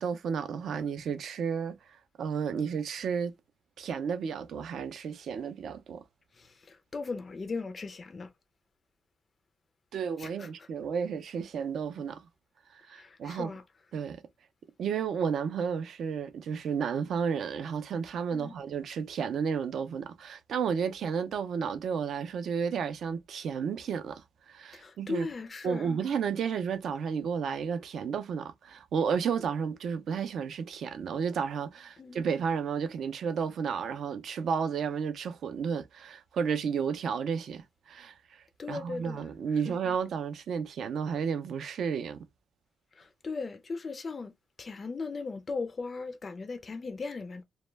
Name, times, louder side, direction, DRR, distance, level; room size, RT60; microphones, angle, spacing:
voice 1, 0.0-1.8 2.2-3.3 3.8-6.0 9.9-12.2 12.7-13.5 13.9-14.2 14.8-25.3 25.6-42.2, right 6 dB, 70° right, 0.4 m, -32 dB
voice 2, 6.4-8.3 10.2-10.5 12.9-13.6 18.3-18.5 24.7-25.9 32.0-32.3 38.6-39.3 39.6-39.8 43.0-44.3 44.6-47.4, left 4 dB, 35° left, 0.3 m, -38 dB
2.1 x 2.1 x 3.1 m
cardioid pair, 120°, 0 cm